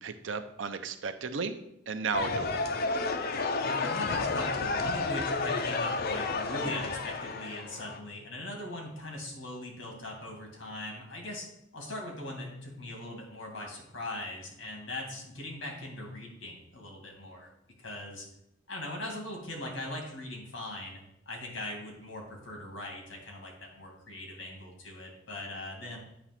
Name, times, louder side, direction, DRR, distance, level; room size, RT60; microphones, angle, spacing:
voice 1, 0.0-1.6 1.9-2.7, right 5 dB, 70° right, 9 dB, 0.6 m, -34 dB
sound 1, 2.1-8.0, left 3 dB, 55° left, 0.6 m, -31 dB
voice 2, 3.6-11.5 11.7-17.5 17.8-18.3 18.7-21.0 21.3-26.0, left 1 dB, 70° left, 1 dB, 2.0 m, -40 dB
8.4 x 3.0 x 5.8 m, 0.81 s
head